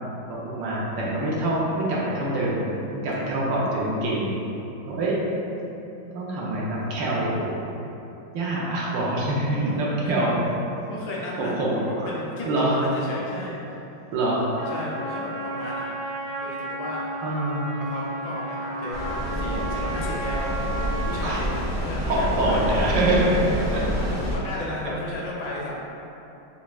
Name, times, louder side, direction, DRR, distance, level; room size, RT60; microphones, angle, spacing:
voice 1, 0.3-2.7 3.0-4.3 4.9-5.2 6.0-7.5 8.3-10.4 11.4-12.1 12.5-12.8 14.1-14.5 17.2-17.7 21.2-21.4 22.1-23.6, right 1 dB, 80° right, -5 dB, 1.4 m, -25 dB
voice 2, 10.8-13.6 14.7-15.9 16.4-17.1 17.8-20.8 21.1-22.9 23.4-23.8 24.2-25.7, left 1 dB, 75° left, -5 dB, 1.0 m, -34 dB
Trumpet, 14.5-21.5, right 1 dB, 55° right, 1.4 m, -32 dB
sound 1, 18.9-24.4, equal, 35° right, 0.4 m, -28 dB
5.5 x 2.0 x 2.3 m, 2.9 s
omnidirectional pair, 2.0 m